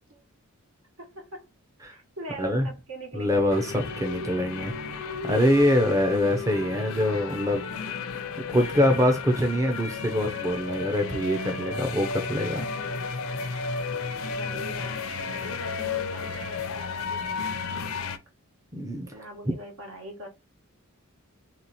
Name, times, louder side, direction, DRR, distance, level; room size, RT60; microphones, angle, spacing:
voice 1, 1.0-1.5 1.9-3.5 6.3-6.4 12.4-12.8 14.3-17.9 19.1-20.3, right 1 dB, 70° right, 1.4 m, -42 dB
voice 2, 3.1-4.7 5.2-7.6 8.5-12.6 18.7-19.1, left 1 dB, 15° right, 0.6 m, -24 dB
sound 1, 3.5-18.2, left 4 dB, 65° left, 0.5 m, -33 dB
3.3 x 3.1 x 4.1 m
head